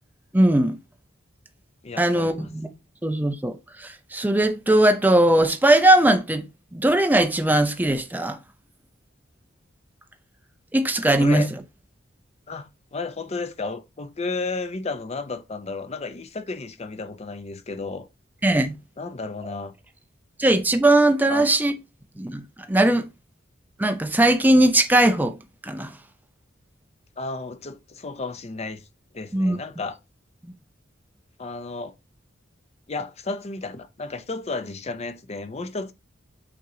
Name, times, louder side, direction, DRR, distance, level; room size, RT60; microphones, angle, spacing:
voice 1, 0.3-0.8 2.0-2.7 3.0-6.4 6.7-8.4 10.7-11.4 18.4-18.8 20.4-21.7 22.2-22.4 22.7-23.1 23.8-25.3 25.6-25.9 29.3-29.6 30.4-30.5, right 1 dB, 10° right, 0.6 m, -19 dB
voice 2, 1.8-2.5 11.2-11.5 12.5-18.1 19.0-19.7 21.3-21.5 27.2-28.9 29.1-30.0 31.4-31.9 32.9-35.9, left 3 dB, 35° left, 0.6 m, -33 dB
8.4 x 2.9 x 3.8 m
head